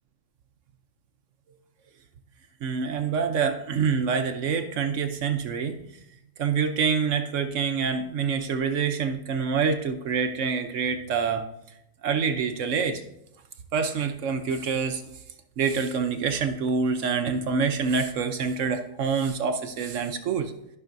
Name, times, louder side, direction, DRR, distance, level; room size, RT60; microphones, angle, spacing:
voice 1, 2.6-5.8 6.4-11.5 12.0-13.0 13.7-15.0 15.6-20.5, right 5 dB, 65° right, 7 dB, 0.9 m, -26 dB
13.5 x 5.8 x 2.6 m, 0.81 s
omnidirectional pair, 1.6 m